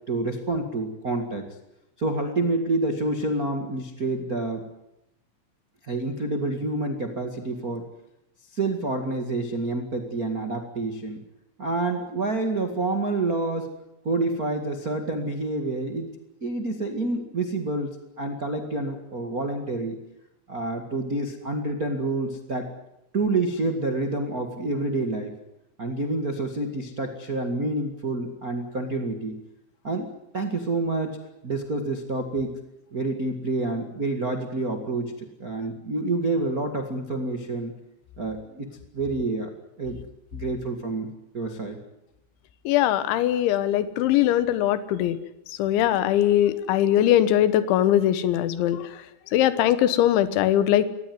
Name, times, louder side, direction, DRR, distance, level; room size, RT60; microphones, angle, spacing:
voice 1, 0.1-1.5 2.0-4.6 5.9-7.8 8.5-11.2 11.6-13.7 14.0-16.1 16.4-20.0 20.5-22.7 23.1-25.3 25.8-29.3 29.8-31.2 31.4-32.6 32.9-37.7 38.2-38.7 38.9-39.5 39.8-40.0 40.3-41.8, right 2 dB, 65° right, 4 dB, 0.8 m, -28 dB
voice 2, 42.7-45.2 45.6-48.9 49.3-50.9, left 12 dB, 80° left, 13 dB, 3.5 m, -21 dB
24.5 x 18.5 x 9.6 m, 0.88 s
omnidirectional pair, 5.5 m